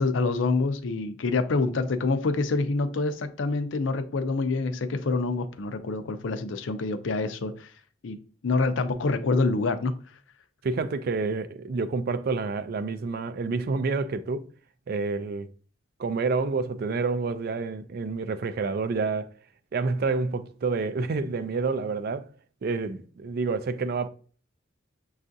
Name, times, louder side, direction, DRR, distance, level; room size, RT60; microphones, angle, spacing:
voice 1, 0.0-7.7 8.0-8.2 8.4-9.9, left 3 dB, 70° left, 0.5 m, -26 dB
voice 2, 10.6-14.4 14.9-15.5 16.0-19.3 19.7-22.3 22.6-24.1, right 4 dB, 50° right, 0.3 m, -28 dB
6.4 x 2.4 x 2.6 m
head